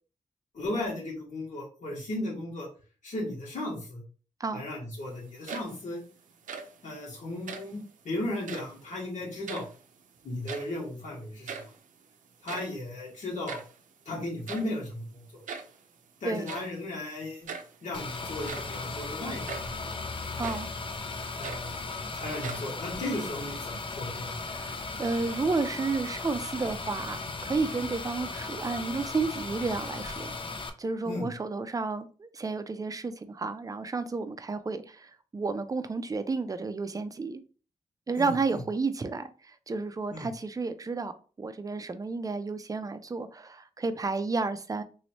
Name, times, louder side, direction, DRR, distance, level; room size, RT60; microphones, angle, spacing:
voice 1, 0.5-2.7 3.0-4.0 4.5-6.0 6.8-7.8 8.0-9.7 10.2-11.6 12.4-13.6 14.1-15.2 16.2-17.5 17.8-19.9 20.2-20.4 21.4-21.8 22.1-24.4 31.0-31.3 38.2-38.3 40.1-40.3, left 1 dB, 75° left, 1.7 m, -35 dB
sound 1, 5.3-6.0 6.3-6.8 7.4-7.8 8.4-8.8 9.2-10.0 10.3-10.9 11.2-11.3 11.5-11.8 12.3-13.8 14.5-14.8 15.5-15.8 16.4-16.8 17.5-17.8 18.3-18.8 19.5-19.8 20.4-20.7 21.2-22.0 22.4-23.0, right 5 dB, 90° right, 0.5 m, -41 dB
sound 2, 17.9-30.7, left 3 dB, 40° left, 0.5 m, -37 dB
voice 2, 20.4-20.7 24.5-30.3 30.8-37.4 38.1-44.8, right 4 dB, 30° right, 0.4 m, -32 dB
3.1 x 3.0 x 2.9 m
cardioid pair, 75°, 13 cm